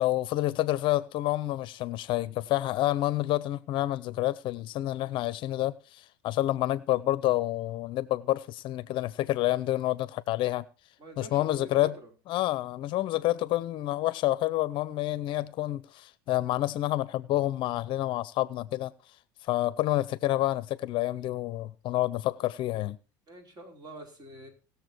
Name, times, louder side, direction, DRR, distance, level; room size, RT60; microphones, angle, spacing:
voice 1, 0.0-10.6 11.2-11.9 12.3-18.9 19.5-23.0, left 15 dB, 50° left, 0.7 m, -28 dB
voice 2, 11.0-11.9 23.3-24.5, right 1 dB, 40° right, 4.7 m, -46 dB
18.5 x 7.1 x 4.5 m
supercardioid pair, 95°, 11 cm